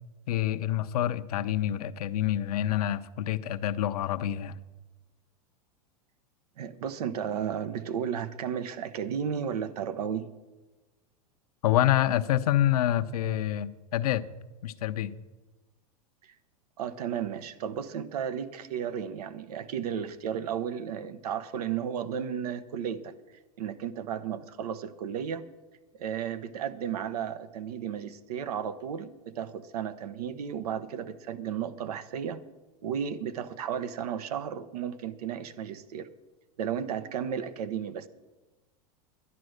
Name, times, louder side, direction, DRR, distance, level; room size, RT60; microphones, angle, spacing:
voice 1, 0.3-4.6 11.6-14.2 14.6-15.1, left 12 dB, 80° left, 0.8 m, -27 dB
voice 2, 6.6-10.3 16.8-23.1 23.6-25.4 26.0-32.4 32.8-36.1 36.6-38.1, right 8 dB, 80° right, 1.1 m, -33 dB
11.0 x 11.0 x 6.5 m
hypercardioid pair, 115°, 19 cm